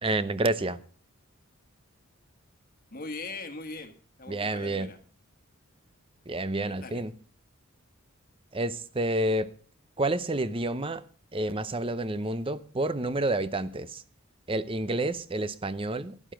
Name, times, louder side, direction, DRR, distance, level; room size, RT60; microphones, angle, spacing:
voice 1, 0.0-0.8 4.3-4.9 6.3-7.1 8.5-9.5 10.0-11.0 11.3-14.0 14.5-16.3, right 2 dB, 25° right, 0.7 m, -29 dB
voice 2, 2.9-3.9 4.2-5.0 6.6-7.0, left 3 dB, 40° left, 1.5 m, -40 dB
12.5 x 12.0 x 5.1 m
head